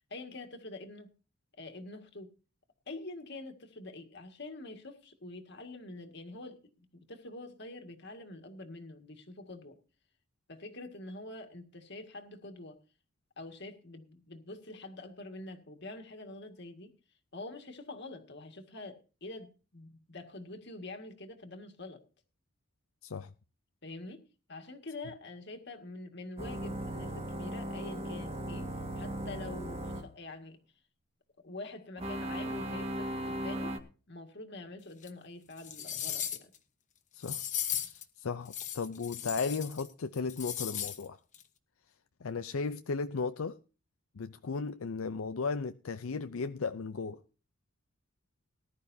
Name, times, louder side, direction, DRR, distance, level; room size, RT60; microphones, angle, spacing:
voice 1, 0.1-1.1 1.6-2.3 2.9-9.8 10.5-12.8 13.4-16.9 17.3-22.0 23.8-24.2 24.5-30.6 31.4-33.8 34.1-36.5, left 2 dB, 55° left, 1.9 m, -46 dB
sound 1, 26.4-30.1 32.0-33.8, right 1 dB, 30° right, 1.7 m, -37 dB
sound 2, 35.0-35.1 35.6-36.6 37.2-38.0 38.5-39.9 40.1-41.0 41.3-41.4, left 10 dB, 35° left, 1.1 m, -37 dB
voice 2, 37.8-41.2 42.2-43.6 44.2-47.2, left 4 dB, 85° left, 0.6 m, -35 dB
19.0 x 11.5 x 2.7 m
head